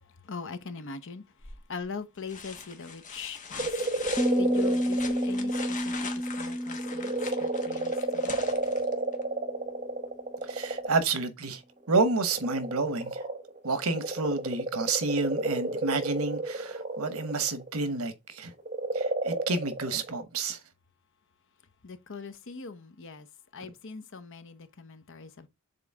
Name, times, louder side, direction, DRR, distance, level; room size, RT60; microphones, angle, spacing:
voice 1, 0.0-4.1 4.4-8.5 21.8-23.3 23.5-25.5, left 5 dB, 65° left, 0.9 m, -42 dB
sound 1, 1.4-1.8 2.3-9.2 11.0-11.1, left 5 dB, 35° left, 1.2 m, -42 dB
sound 2, 3.6-5.7 6.2-11.1 11.9-18.0 18.6-20.2, right 2 dB, 35° right, 1.1 m, -32 dB
Piano, 4.2-9.8, equal, ahead, 0.4 m, -31 dB
voice 2, 10.4-11.6 11.9-13.2 13.6-18.5 18.9-20.6, right 3 dB, 90° right, 1.1 m, -29 dB
6.9 x 4.0 x 3.5 m
head